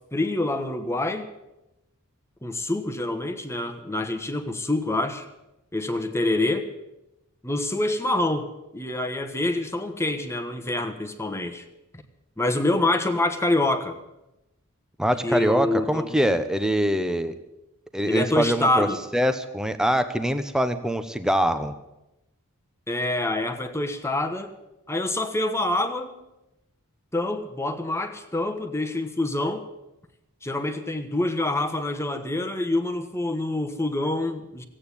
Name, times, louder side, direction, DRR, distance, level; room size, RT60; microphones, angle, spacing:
voice 1, 0.1-1.3 2.4-5.3 5.7-6.7 7.4-11.6 12.4-13.9 15.2-16.2 18.0-19.0 22.9-24.5 24.9-26.1 27.1-29.6 30.4-34.6, left 2 dB, 10° left, 6 dB, 1.2 m, -26 dB
voice 2, 15.0-17.4 17.9-18.9 19.1-21.7, equal, 5° right, 10 dB, 0.9 m, -24 dB
16.5 x 8.9 x 9.8 m, 0.93 s
head